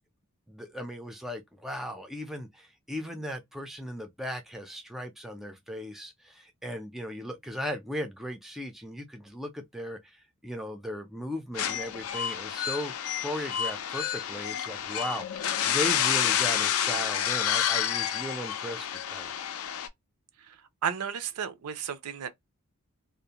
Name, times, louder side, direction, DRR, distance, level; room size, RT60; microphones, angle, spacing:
voice 1, 0.5-19.3, equal, ahead, 0.3 m, -37 dB
sound 1, 11.6-19.9, left 9 dB, 70° left, 0.4 m, -29 dB
voice 2, 20.8-22.3, right 8 dB, 85° right, 0.5 m, -33 dB
2.5 x 2.0 x 2.8 m
head